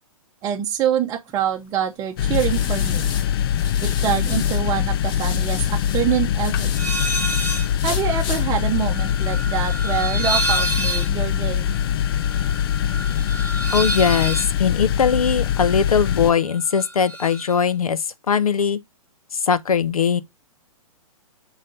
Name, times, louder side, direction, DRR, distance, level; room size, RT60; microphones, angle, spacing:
voice 1, 0.4-3.1 3.8-6.7 7.8-11.8, right 9 dB, 20° right, 0.7 m, -25 dB
sound 1, 1.4-4.6 5.0-7.2 7.7-8.4, left 7 dB, 25° left, 0.9 m, -34 dB
sound 2, 2.2-16.3, left 9 dB, 40° left, 0.4 m, -23 dB
sound 3, 6.8-7.7 8.0-16.2 16.5-17.5, right 1 dB, 10° left, 1.3 m, -29 dB
voice 2, 13.7-18.8 19.3-20.2, left 6 dB, 75° left, 0.8 m, -20 dB
6.3 x 4.0 x 4.0 m
figure-of-eight pair, 120°, 19 cm